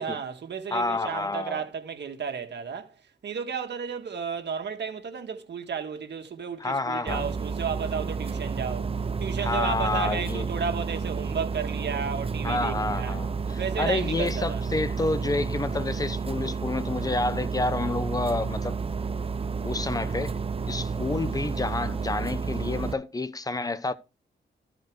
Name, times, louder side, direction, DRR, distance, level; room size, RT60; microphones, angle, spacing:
voice 1, 0.0-2.9 3.2-13.2 13.6-14.6, right 6 dB, 70° right, 1.7 m, -33 dB
voice 2, 0.7-1.6 6.6-7.3 9.4-10.5 12.4-18.8 19.6-20.4 20.7-23.9, left 3 dB, 20° left, 0.9 m, -29 dB
sound 1, 7.1-22.9, right 5 dB, 30° right, 0.6 m, -31 dB
14.0 x 5.0 x 4.7 m
cardioid pair, 100°, 19 cm